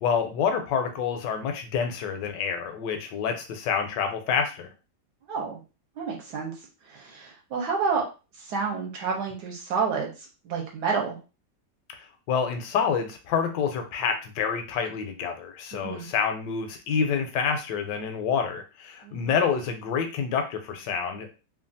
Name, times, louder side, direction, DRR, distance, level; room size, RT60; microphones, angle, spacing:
voice 1, 0.0-4.7 12.3-21.4, left 6 dB, 85° left, 6 dB, 1.2 m, -27 dB
voice 2, 5.3-5.6 6.0-6.5 6.8-8.0 8.4-10.1 10.4-11.2 15.7-16.1 19.0-19.4, right 5 dB, 75° right, 0 dB, 1.2 m, -29 dB
3.2 x 2.3 x 2.6 m, 0.32 s
omnidirectional pair, 1.9 m